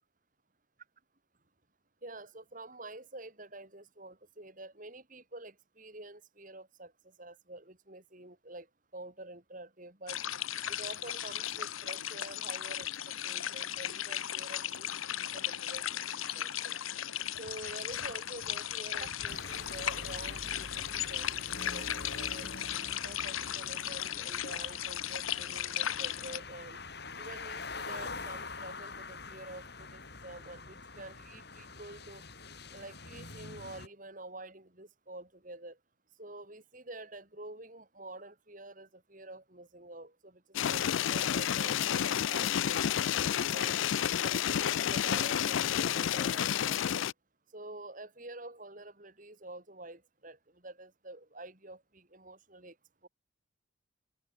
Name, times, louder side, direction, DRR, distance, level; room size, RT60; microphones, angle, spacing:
voice 1, 2.0-8.7 8.9-10.2 10.7-16.0 16.3-16.8 17.4-22.6 23.0-26.8 27.2-32.2 32.7-35.8 36.2-40.4 40.7-43.7 44.2-47.1 47.5-52.8 53.0-53.1, right 2 dB, 40° right, 3.7 m, -48 dB
sound 1, 10.1-26.4, left 11 dB, 90° left, 1.2 m, -36 dB
sound 2, 19.3-33.9, left 3 dB, 50° left, 6.4 m, -45 dB
sound 3, 40.5-47.1, left 9 dB, 70° left, 0.4 m, -30 dB
head